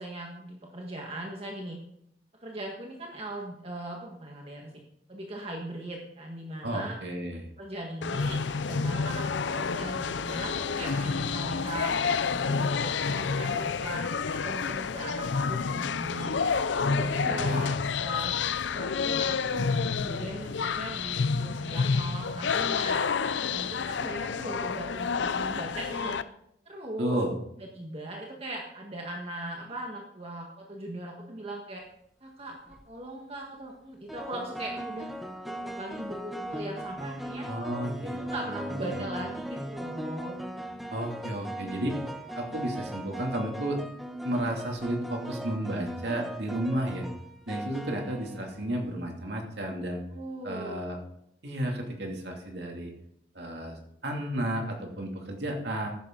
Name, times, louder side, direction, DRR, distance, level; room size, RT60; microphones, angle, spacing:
voice 1, 0.0-1.8 2.4-4.7 5.1-6.9 7.6-16.4 16.8-18.4 18.7-23.0 23.5-26.2 26.6-27.2 27.6-31.8 32.2-35.1 35.5-37.5 38.0-40.4 50.1-50.9, right 1 dB, 35° right, 0 dB, 1.6 m, -39 dB
voice 2, 6.6-7.5 17.2-17.8 27.0-27.3 37.5-38.2 38.5-39.1 40.9-42.0 42.3-43.8 44.2-47.1 47.5-50.0 50.4-51.0 51.4-52.9 53.3-55.9, right 1 dB, 65° right, 1 dB, 2.6 m, -32 dB
sound 1, 8.0-26.2, left 5 dB, 80° left, 0.6 m, -29 dB
sound 2, 32.5-32.8 34.1-48.9, right 1 dB, ahead, 0.9 m, -38 dB
14.0 x 11.0 x 3.9 m, 0.76 s
head